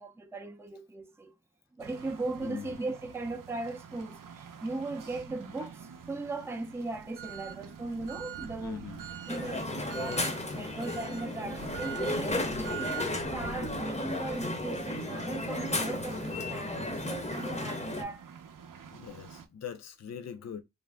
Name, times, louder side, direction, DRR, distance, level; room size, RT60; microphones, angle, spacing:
voice 1, 0.0-1.3 1.7-8.8 9.3-18.2 19.0-19.1, right 2 dB, 10° right, 0.4 m, -38 dB
sound 1, 1.8-19.5, right 8 dB, 80° right, 0.5 m, -45 dB
voice 2, 2.4-2.7 8.6-9.0 18.9-20.6, left 7 dB, 55° left, 0.5 m, -42 dB
Crowd, 9.3-18.0, left 2 dB, 20° left, 0.7 m, -34 dB
2.5 x 2.0 x 3.3 m
wide cardioid pair, 80°, 32 cm